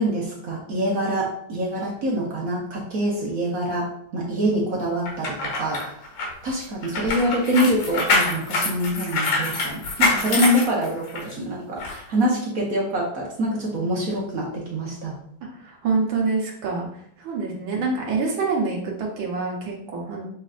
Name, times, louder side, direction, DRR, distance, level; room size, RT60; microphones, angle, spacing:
voice 1, 0.0-6.0 6.4-15.2, equal, 50° right, -3 dB, 1.2 m, -25 dB
sound 1, 5.1-11.3 11.8-12.0, left 3 dB, 80° left, 2.0 m, -25 dB
voice 2, 15.6-16.9 17.2-20.3, right 4 dB, 65° right, -1 dB, 1.8 m, -26 dB
6.3 x 3.3 x 2.5 m, 0.69 s
omnidirectional pair, 2.3 m